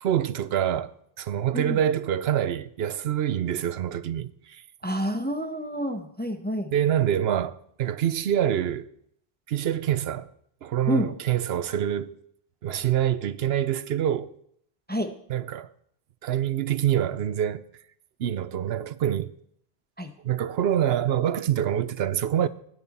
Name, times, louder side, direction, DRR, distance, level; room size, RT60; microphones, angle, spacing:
voice 1, 0.0-4.6 6.7-8.9 9.5-10.3 10.6-12.2 12.6-14.3 15.3-15.7 16.2-17.6 18.2-19.3 20.2-22.5, right 10 dB, 70° right, 0.9 m, -26 dB
voice 2, 4.8-6.7 10.9-11.1 14.9-15.1 20.0-20.1, equal, 10° left, 0.7 m, -28 dB
17.0 x 9.8 x 4.2 m
omnidirectional pair, 1.1 m